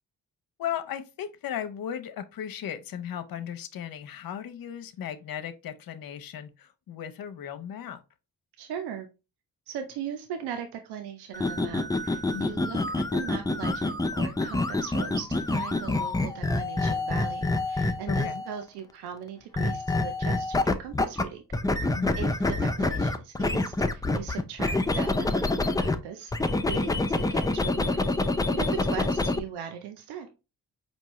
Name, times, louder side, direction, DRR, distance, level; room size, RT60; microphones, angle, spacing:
voice 1, 0.6-8.0 12.3-12.6 18.1-18.4 21.9-22.3, left 9 dB, 60° left, 0.7 m, -36 dB
voice 2, 8.6-9.1 9.7-21.4 22.2-26.3 26.7-30.3, right 8 dB, 85° right, 0.6 m, -39 dB
sound 1, 11.3-18.5 19.5-21.2 21.5-26.0 26.3-29.4, left 2 dB, 10° left, 0.5 m, -27 dB
4.5 x 2.7 x 3.0 m
supercardioid pair, 50°, 39 cm